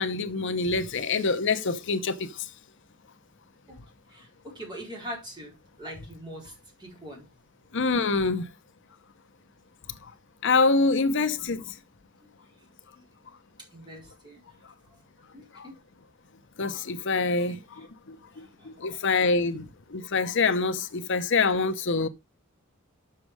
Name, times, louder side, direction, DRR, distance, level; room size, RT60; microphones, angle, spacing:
voice 1, 0.0-2.3 7.7-8.5 10.4-11.6 15.6-15.7 16.6-22.1, left 4 dB, 60° left, 0.8 m, -26 dB
voice 2, 4.1-7.2 12.9-13.0 13.7-14.4 15.3-15.8 17.5-17.9 18.4-19.0 21.0-21.1, equal, 20° right, 4.4 m, -43 dB
7.4 x 6.8 x 4.7 m
head